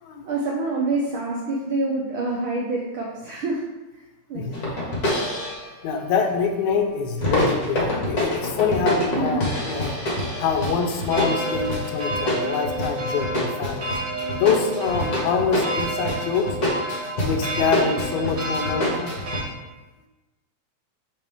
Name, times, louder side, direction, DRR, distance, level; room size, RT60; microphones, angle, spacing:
voice 1, 0.2-3.6 3.9-4.0 4.3-4.6 9.1-9.5, right 2 dB, 75° right, -3 dB, 1.1 m, -26 dB
sound 1, 4.5-5.7 7.2-19.4, left 1 dB, 45° left, 1.4 m, -26 dB
voice 2, 5.8-10.0 10.4-13.9 14.4-16.5 17.2-19.1, left 5 dB, 85° left, 3 dB, 2.1 m, -25 dB
sound 2, 11.1-19.4, right 1 dB, 55° right, 0.9 m, -30 dB
6.1 x 5.4 x 3.5 m, 1.1 s
omnidirectional pair, 3.3 m